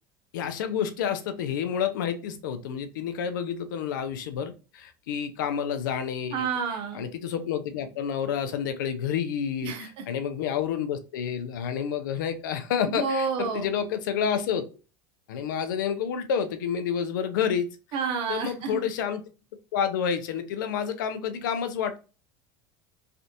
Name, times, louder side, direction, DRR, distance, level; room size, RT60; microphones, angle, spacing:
voice 1, 0.3-6.4 6.9-14.7 15.3-17.7 18.3-19.2 19.7-22.0, left 8 dB, 85° left, 9 dB, 0.6 m, -29 dB
voice 2, 6.3-7.0 9.6-9.9 12.9-13.7 17.9-18.8, right 5 dB, 55° right, 4 dB, 0.8 m, -29 dB
3.3 x 2.5 x 2.8 m, 0.34 s
supercardioid pair, 105°, 10 cm